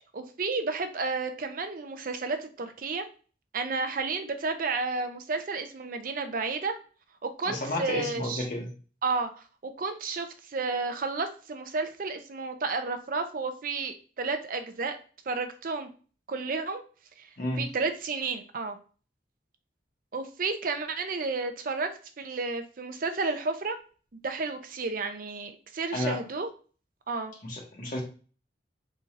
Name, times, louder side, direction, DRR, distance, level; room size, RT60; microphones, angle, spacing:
voice 1, 0.1-3.1 3.5-6.8 7.2-8.5 9.0-15.0 15.3-15.9 16.3-16.8 17.2-17.3 17.6-18.8 20.1-23.8 24.2-26.5 27.1-27.3, right 4 dB, 45° right, 7 dB, 0.5 m, -32 dB
voice 2, 7.4-8.7 17.4-17.6 25.9-26.2 27.4-28.0, left 1 dB, 45° left, 0 dB, 1.2 m, -31 dB
4.3 x 3.9 x 2.5 m, 0.38 s
head